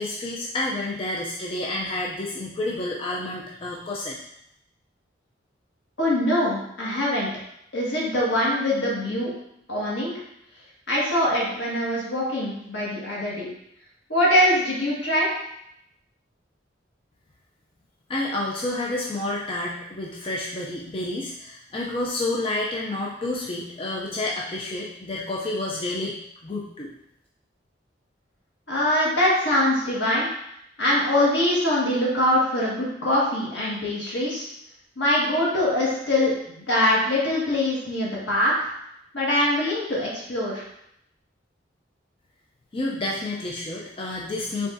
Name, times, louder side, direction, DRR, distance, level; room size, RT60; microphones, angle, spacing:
voice 1, 0.0-4.2 18.1-26.9 42.7-44.7, left 2 dB, 30° left, -4 dB, 0.5 m, -29 dB
voice 2, 6.0-7.3 7.7-9.3 9.7-10.1 10.9-13.5 14.1-15.3 28.7-30.3 30.8-34.5 35.0-38.7 39.1-40.6, left 1 dB, 75° left, -6 dB, 1.6 m, -23 dB
4.8 x 3.5 x 2.6 m, 0.76 s
head